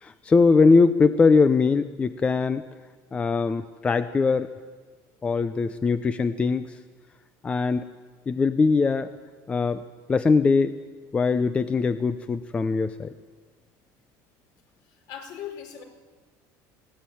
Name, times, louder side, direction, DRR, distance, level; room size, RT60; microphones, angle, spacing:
voice 1, 0.0-2.6 3.1-4.5 5.2-6.8 7.4-7.8 8.3-9.1 9.5-9.8 10.1-10.8 11.1-13.1, left 4 dB, 15° left, 12 dB, 0.6 m, -21 dB
voice 2, 14.8-15.8, left 9 dB, 60° left, 4 dB, 4.5 m, -39 dB
21.5 x 17.0 x 9.2 m, 1.4 s
cardioid pair, 170°, 8 cm